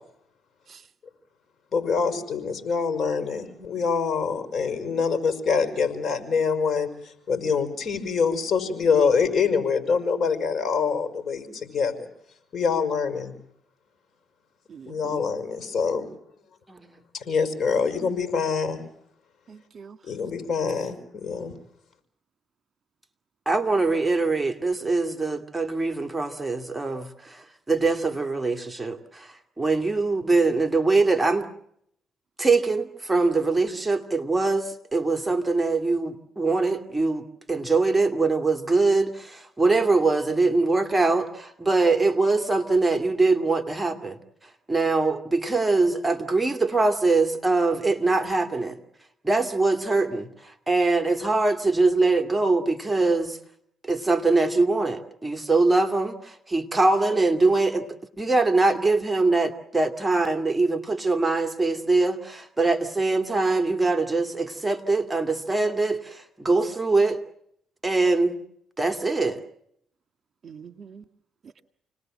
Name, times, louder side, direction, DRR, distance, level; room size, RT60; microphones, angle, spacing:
voice 1, 1.7-12.1 12.5-13.4 14.9-16.1 17.1-18.8 20.0-21.5, left 5 dB, 50° left, 9 dB, 5.7 m, -25 dB
voice 2, 14.7-15.2 19.5-20.0 70.4-71.0, right 6 dB, 50° right, 9 dB, 1.8 m, -44 dB
voice 3, 23.5-29.3 29.6-31.5 32.4-44.2 44.7-48.8 49.2-53.4 53.8-57.8 58.2-67.2 67.8-68.4 68.8-69.4, right 3 dB, 15° right, 7 dB, 2.4 m, -23 dB
29.0 x 20.0 x 7.6 m, 0.72 s
cardioid pair, 90°, 0 cm